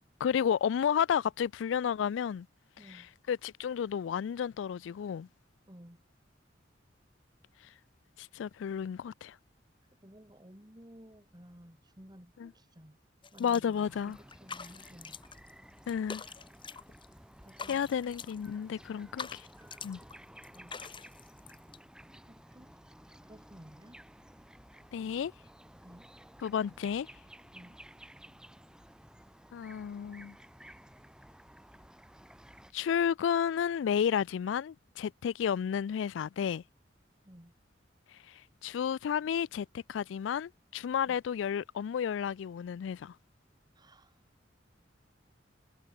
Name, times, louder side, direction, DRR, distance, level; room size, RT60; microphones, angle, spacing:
voice 1, 0.2-2.5 2.9-3.0 3.3-5.3 8.2-9.4 12.4-12.5 13.4-14.2 15.9-16.2 17.7-19.5 19.8-20.0 24.9-25.3 26.4-27.1 29.5-30.3 32.7-36.6 38.3-43.1, left 8 dB, 80° left, 0.3 m, -32 dB
voice 2, 2.8-3.1 5.7-6.0 9.8-13.0 13.3-15.2 17.4-17.8 19.6-19.8 20.5-20.9 22.2-22.8 23.2-24.0 24.8-24.9 25.8-26.1 27.5-27.8 37.3-37.5 38.7-38.8 41.0-41.2 43.7-44.2, equal, 25° right, 3.8 m, -55 dB
sound 1, 13.2-13.9 14.1-15.5 15.8-17.1 17.4-18.5 18.9-20.1 20.4-21.8, left 5 dB, 25° left, 1.9 m, -45 dB
sound 2, 13.8-32.7, equal, 5° right, 6.7 m, -55 dB
head